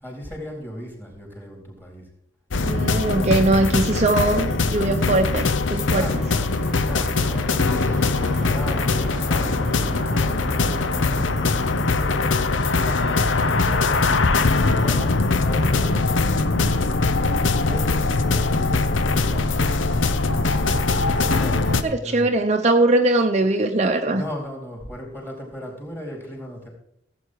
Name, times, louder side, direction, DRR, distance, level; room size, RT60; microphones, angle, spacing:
voice 1, 0.0-2.1 2.5-3.4 5.9-11.4 11.7-12.3 12.7-14.3 14.6-16.7 17.1-18.7 19.1-19.7 20.9-22.3 24.1-26.7, equal, 10° left, -1 dB, 4.0 m, -36 dB
sound 1, 2.5-21.8, left 3 dB, 90° left, 0.8 m, -21 dB
voice 2, 2.6-6.1 21.8-24.2, right 2 dB, 35° right, 5 dB, 0.7 m, -21 dB
sound 2, 5.2-14.8, equal, 5° right, 1.0 m, -37 dB
sound 3, 12.4-15.9, left 2 dB, 70° left, 1.8 m, -44 dB
16.5 x 8.6 x 4.8 m, 0.72 s
head